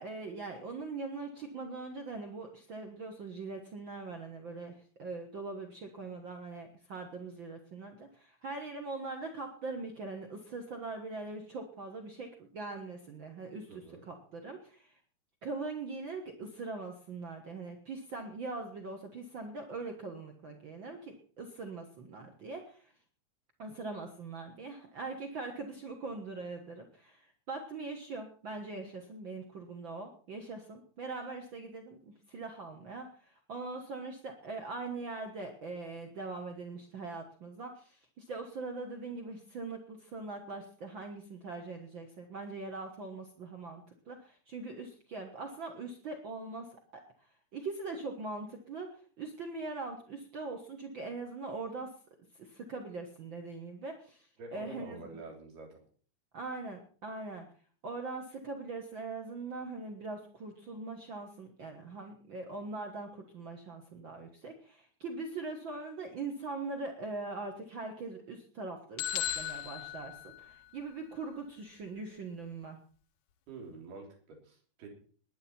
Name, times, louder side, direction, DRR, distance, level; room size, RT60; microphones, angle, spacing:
voice 1, 0.0-15.0 15.4-22.9 23.6-47.0 47.5-51.9 52.4-54.9 56.3-57.4 57.8-72.8, right 3 dB, 90° right, 4 dB, 1.0 m, -42 dB
voice 2, 13.7-14.0 54.4-55.8 73.5-74.9, right 3 dB, 70° right, 1 dB, 5.4 m, -47 dB
sound 1, 69.0-70.9, left 10 dB, 70° left, 1.7 m, -37 dB
20.5 x 9.9 x 4.4 m, 0.43 s
omnidirectional pair, 4.7 m